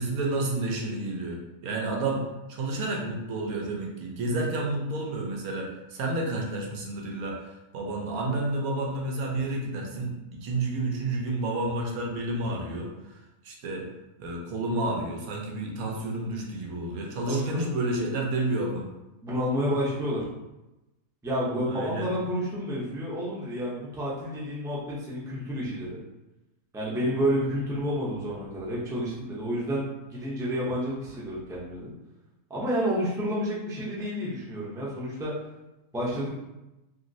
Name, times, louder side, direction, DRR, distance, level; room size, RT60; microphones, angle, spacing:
voice 1, 0.0-2.2 2.5-13.1 13.4-13.9 14.2-18.9 21.7-22.1, right 2 dB, 90° right, 0 dB, 1.1 m, -30 dB
voice 2, 17.3-17.7 19.2-20.3 21.2-26.0 26.7-29.8 30.1-31.9 32.5-35.3 35.9-36.4, equal, 5° right, -6 dB, 0.4 m, -30 dB
2.9 x 2.9 x 2.6 m, 0.98 s
omnidirectional pair, 1.5 m